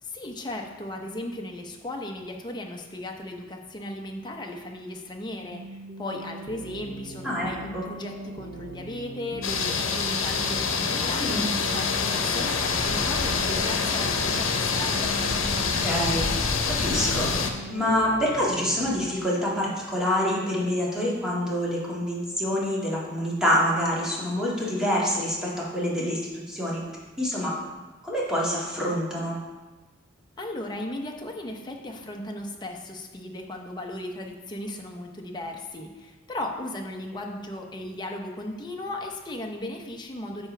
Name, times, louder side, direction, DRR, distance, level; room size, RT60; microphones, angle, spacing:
voice 1, 0.0-15.1 30.4-40.5, left 1 dB, 20° left, 1 dB, 0.8 m, -36 dB
sound 1, 5.5-19.1, right 2 dB, 60° right, 0.7 m, -41 dB
voice 2, 7.2-7.9 11.2-11.5 15.8-16.3 16.7-17.3 17.7-26.2 26.5-26.8 27.2-27.5 28.0-29.4, equal, 5° right, -7 dB, 2.0 m, -26 dB
sound 2, 9.4-17.5, left 5 dB, 80° left, 0.8 m, -26 dB
9.5 x 6.1 x 3.3 m, 1.2 s
head